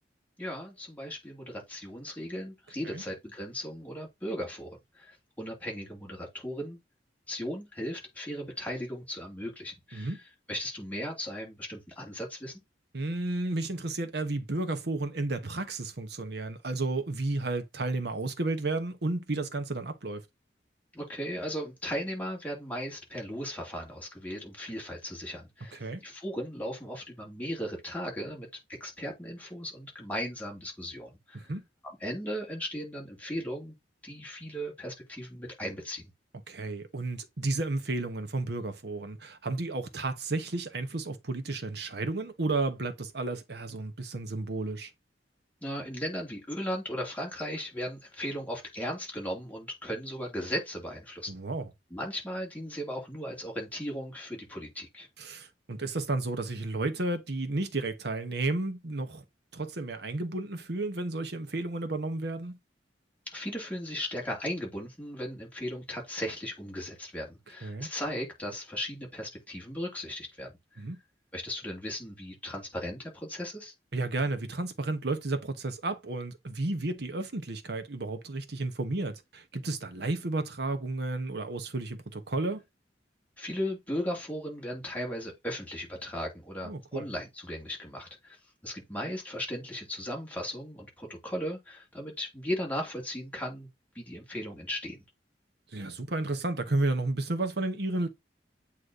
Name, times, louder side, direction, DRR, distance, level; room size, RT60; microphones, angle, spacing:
voice 1, 0.4-6.8 7.3-10.2 10.5-12.6 20.9-28.5 28.8-31.5 32.0-33.7 34.0-36.1 45.6-51.4 51.9-55.1 63.3-70.8 71.3-73.7 83.4-88.4 88.6-93.7 93.9-95.0, equal, 10° left, 2.6 m, -37 dB
voice 2, 12.9-20.2 25.7-26.0 31.3-31.6 36.5-44.9 51.3-51.7 55.2-59.2 59.5-62.6 67.6-67.9 70.8-71.0 73.9-82.6 86.6-87.1 95.7-98.1, right 2 dB, 65° right, 1.2 m, -32 dB
8.2 x 3.1 x 3.8 m
head